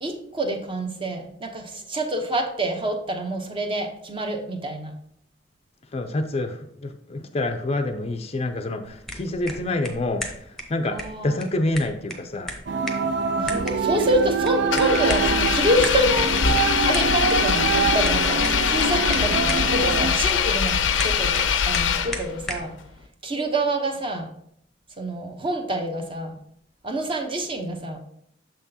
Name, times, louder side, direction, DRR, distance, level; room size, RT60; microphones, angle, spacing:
voice 1, 0.0-5.0 10.8-11.4 13.4-16.4 16.8-19.4 19.6-22.7 23.2-24.3 25.0-26.4 26.8-28.0, right 1 dB, 30° right, 4 dB, 0.9 m, -27 dB
voice 2, 5.9-11.0 11.2-12.5, left 2 dB, 35° left, 7 dB, 0.5 m, -27 dB
sound 1, 8.9-22.7, left 1 dB, ahead, 0.9 m, -37 dB
sound 2, 12.7-20.1, right 5 dB, 65° right, 0.5 m, -25 dB
Engine, 14.7-22.4, left 7 dB, 85° left, 0.5 m, -23 dB
6.6 x 5.9 x 2.8 m, 0.69 s
head